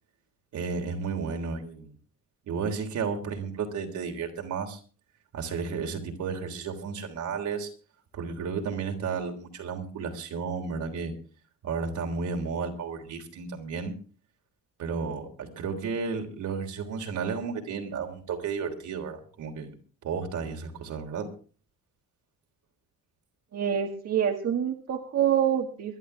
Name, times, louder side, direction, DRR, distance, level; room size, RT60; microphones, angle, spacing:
voice 1, 0.5-1.9 2.5-4.8 5.3-7.7 8.1-11.2 11.6-13.9 14.8-19.7 20.0-21.3, right 5 dB, 75° right, 3 dB, 3.5 m, -33 dB
voice 2, 23.5-26.0, right 9 dB, 55° right, 2 dB, 1.8 m, -26 dB
23.0 x 11.5 x 3.4 m, 0.37 s
cardioid pair, 90°, 30 cm